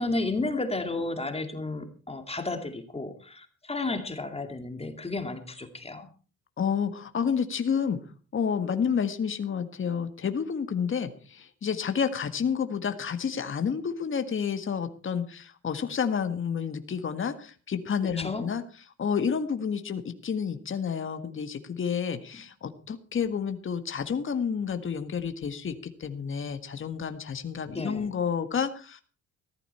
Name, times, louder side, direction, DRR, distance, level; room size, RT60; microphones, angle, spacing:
voice 1, 0.0-6.1 18.2-18.5 27.7-28.1, left 2 dB, 20° left, 6 dB, 2.4 m, -32 dB
voice 2, 6.6-8.0 8.3-18.6 19.0-29.0, left 7 dB, 40° left, 8 dB, 1.7 m, -30 dB
16.0 x 13.5 x 4.4 m, 0.38 s
cardioid pair, 90°, 30 cm